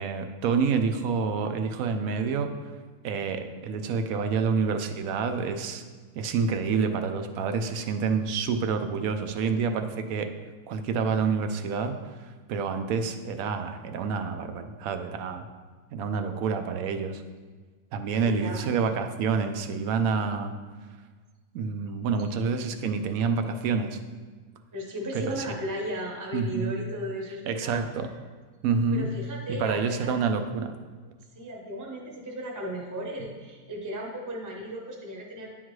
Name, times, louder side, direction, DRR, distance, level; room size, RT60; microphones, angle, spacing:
voice 1, 0.0-2.5 3.0-5.8 6.2-10.3 10.7-12.0 12.5-15.5 15.9-17.2 17.9-20.5 21.5-24.0 25.3-25.4 26.3-26.8 27.5-28.1 28.6-29.1 29.5-30.7, right 5 dB, 70° right, 7 dB, 1.0 m, -28 dB
voice 2, 18.1-18.7 24.7-27.8 28.9-30.1 31.3-35.5, equal, 15° right, -1 dB, 0.7 m, -36 dB
10.0 x 3.7 x 3.1 m, 1.5 s
omnidirectional pair, 1.6 m